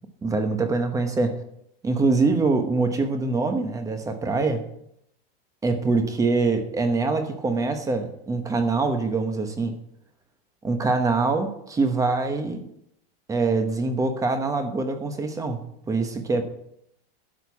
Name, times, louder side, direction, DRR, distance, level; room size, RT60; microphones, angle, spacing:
voice 1, 0.2-1.4 1.8-4.6 5.6-9.8 10.6-12.7 13.3-16.4, right 3 dB, 10° right, 7 dB, 0.9 m, -24 dB
11.0 x 6.7 x 7.1 m, 0.77 s
supercardioid pair, 165°, 31 cm